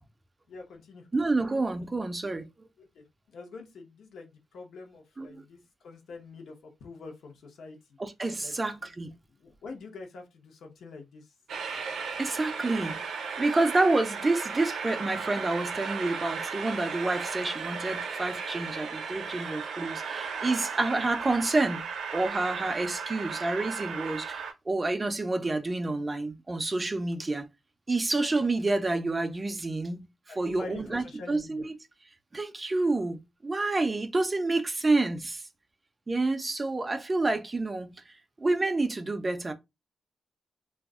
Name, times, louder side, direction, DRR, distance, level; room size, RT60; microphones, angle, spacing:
voice 1, 0.5-1.1 2.8-5.6 5.8-6.5 6.8-7.8 8.4-8.5 9.4-11.3 30.3-31.6, left 4 dB, 65° left, 0.8 m, -45 dB
voice 2, 1.1-2.7 5.2-5.4 8.0-9.1 12.2-13.0 13.4-21.8 22.1-27.5 27.9-30.1 30.4-31.7 32.3-35.4 36.1-38.0 38.4-39.5, right 2 dB, 15° right, 0.3 m, -28 dB
Train, 11.5-24.5, right 5 dB, 65° right, 0.5 m, -35 dB
2.3 x 2.0 x 3.5 m
wide cardioid pair, 175°, 0 cm